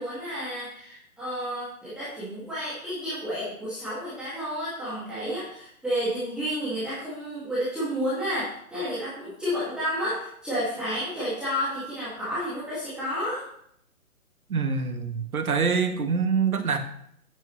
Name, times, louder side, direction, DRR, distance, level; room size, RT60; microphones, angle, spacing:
voice 1, 0.0-13.4, equal, ahead, -12 dB, 2.0 m, -31 dB
voice 2, 14.5-16.8, right 5 dB, 70° right, 7 dB, 1.7 m, -25 dB
12.0 x 9.1 x 3.1 m, 0.70 s
hypercardioid pair, 160°, 44 cm